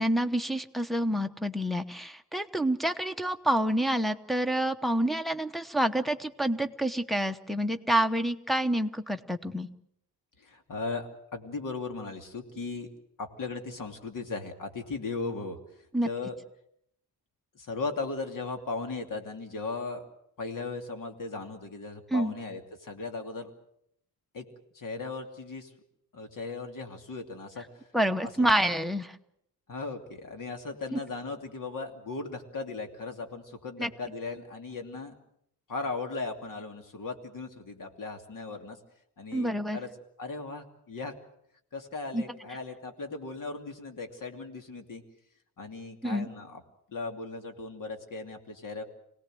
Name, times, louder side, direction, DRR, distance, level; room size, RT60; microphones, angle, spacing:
voice 1, 0.0-9.7 15.9-16.1 22.1-22.3 27.9-29.2 30.9-31.0 33.8-33.9 39.3-39.8 42.1-42.2 46.0-46.3, right 1 dB, ahead, 10 dB, 1.0 m, -28 dB
voice 2, 10.4-12.9 13.2-16.3 17.5-20.0 20.4-23.5 24.3-24.5 24.7-25.7 26.1-27.6 28.2-28.5 29.7-35.2 35.7-38.8 39.2-39.9 40.2-41.1 41.7-45.0 45.6-46.6 46.9-48.8, left 3 dB, 55° left, 5 dB, 2.9 m, -37 dB
25.5 x 18.5 x 7.8 m, 0.73 s
wide cardioid pair, 140°, 39 cm